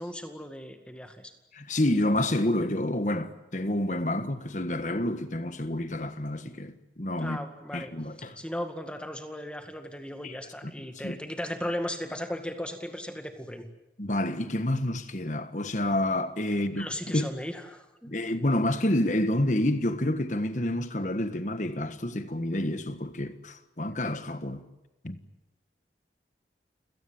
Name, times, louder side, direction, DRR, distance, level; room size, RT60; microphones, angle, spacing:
voice 1, 0.0-1.3 7.2-7.9 8.4-13.7 16.7-18.1, left 1 dB, 5° left, 2.0 m, -36 dB
voice 2, 1.5-7.4 7.7-8.4 10.2-10.3 10.6-10.7 11.0-11.2 14.0-17.3 18.1-24.6 25.0-25.2, left 1 dB, 45° left, 1.5 m, -28 dB
30.0 x 18.0 x 8.9 m
head